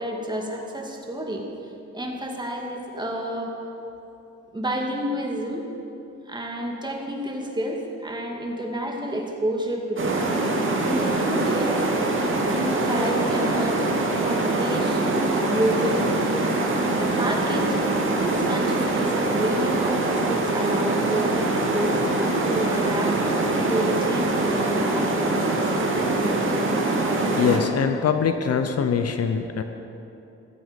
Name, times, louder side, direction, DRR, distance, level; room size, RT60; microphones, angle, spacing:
voice 1, 0.0-1.5 1.9-3.5 4.5-5.7 6.3-10.3 10.8-12.0 12.5-13.9 14.2-16.1 17.1-17.8 18.1-22.0 22.4-23.2 23.7-25.7, right 1 dB, 15° right, 1 dB, 2.4 m, -29 dB
sound 1, 10.0-27.6, right 2 dB, 40° right, 2.5 m, -23 dB
voice 2, 27.4-29.6, left 6 dB, 55° left, 8 dB, 0.9 m, -23 dB
15.5 x 13.5 x 5.4 m, 2.8 s
cardioid pair, 90°, 30 cm